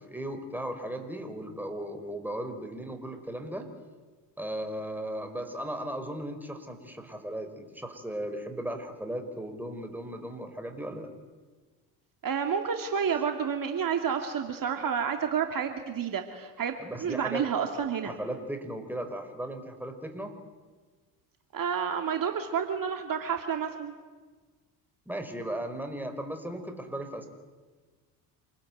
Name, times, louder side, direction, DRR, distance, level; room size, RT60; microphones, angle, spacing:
voice 1, 0.0-3.7 4.4-11.1 16.8-17.4 18.0-20.3 25.0-27.3, right 1 dB, 5° right, 6 dB, 5.2 m, -36 dB
voice 2, 12.2-16.7 17.0-18.1 21.5-23.9, right 7 dB, 45° right, 5 dB, 2.7 m, -30 dB
28.0 x 21.0 x 9.4 m, 1.4 s
hypercardioid pair, 70°, 49 cm